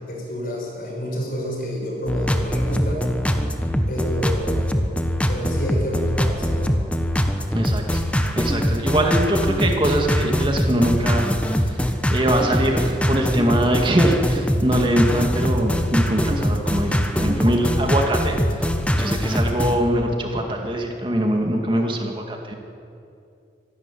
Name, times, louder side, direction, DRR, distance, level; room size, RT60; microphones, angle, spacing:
voice 1, 0.1-3.1 3.9-4.6 5.3-6.8, equal, 50° left, 0 dB, 6.2 m, -29 dB
sound 1, 2.1-19.8, equal, 5° left, 1.2 m, -22 dB
voice 2, 7.5-11.8 12.1-18.7 18.9-22.5, right 1 dB, 25° right, 2 dB, 2.1 m, -22 dB
25.0 x 12.5 x 10.0 m, 2.6 s
head